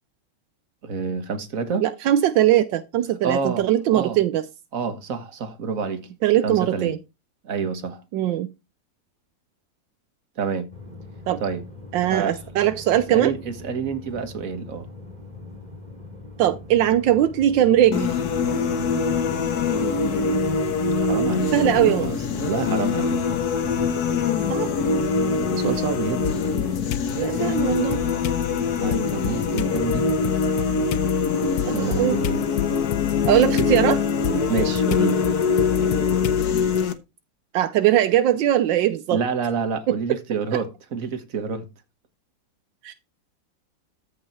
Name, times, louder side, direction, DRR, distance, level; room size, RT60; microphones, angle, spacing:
voice 1, 0.8-1.8 3.2-3.7 3.9-4.2 4.7-6.1 6.4-6.9 7.4-8.0 10.4-10.7 11.4-11.6 12.0-12.4 13.1-14.9 21.0-23.2 25.5-26.3 28.8-30.1 31.7-32.5 33.6-33.7 34.5-35.2 39.1-41.7, right 5 dB, 45° right, 1.8 m, -28 dB
voice 2, 1.8-4.5 6.2-7.0 8.1-8.5 11.3-11.4 11.9-13.3 16.4-18.2 21.5-22.1 24.5-24.7 27.1-28.0 31.6-32.2 33.3-34.0 37.5-39.2 39.9-40.0 42.8-42.9, right 12 dB, 80° right, 1.4 m, -20 dB
sound 1, 10.7-30.4, left 2 dB, 20° right, 3.3 m, -42 dB
sound 2, 17.9-36.9, left 5 dB, 60° left, 1.6 m, -23 dB
sound 3, 26.2-27.1 27.6-36.8, left 12 dB, 85° left, 1.5 m, -31 dB
14.0 x 6.0 x 4.6 m
omnidirectional pair, 2.0 m